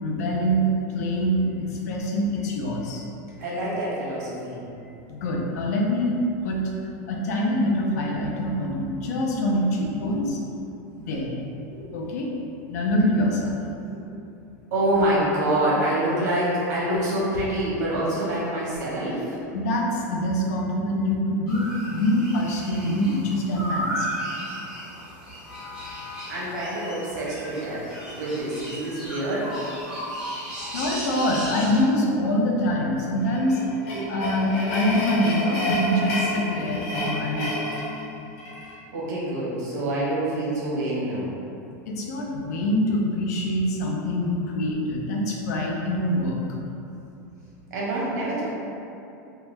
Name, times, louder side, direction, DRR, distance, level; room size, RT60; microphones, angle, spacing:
voice 1, 0.0-3.1 5.1-6.2 6.4-6.6 7.1-10.4 10.9-11.3 11.9-12.3 12.7-13.6 19.5-24.1 25.5-26.3 30.7-33.6 34.1-37.5 41.9-46.4, equal, 70° left, -1 dB, 0.5 m, -25 dB
voice 2, 3.3-4.6 10.0-10.2 11.7-11.9 13.9-14.0 14.7-19.4 26.3-29.5 33.9-34.1 38.9-41.3 47.7-48.5, right 1 dB, 80° right, -6 dB, 1.0 m, -26 dB
sound 1, 21.5-31.8, equal, 5° right, 0.4 m, -35 dB
sound 2, 33.2-38.7, left 1 dB, 35° left, 0.8 m, -29 dB
2.8 x 2.2 x 3.2 m, 2.7 s
supercardioid pair, 175°, 9 cm